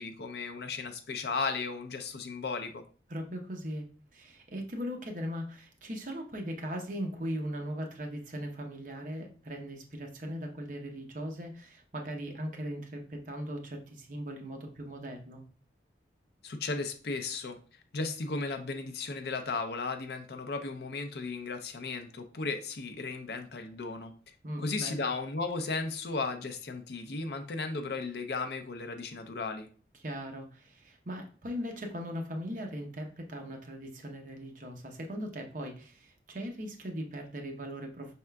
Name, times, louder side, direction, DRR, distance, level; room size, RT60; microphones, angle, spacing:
voice 1, 0.0-2.8 16.4-17.6 17.9-24.1 24.6-29.7, left 4 dB, 60° left, 7 dB, 0.5 m, -35 dB
voice 2, 3.1-3.8 4.1-15.4 24.4-25.0 30.0-38.1, equal, 45° right, 2 dB, 0.7 m, -39 dB
5.5 x 3.6 x 2.2 m, 0.40 s
head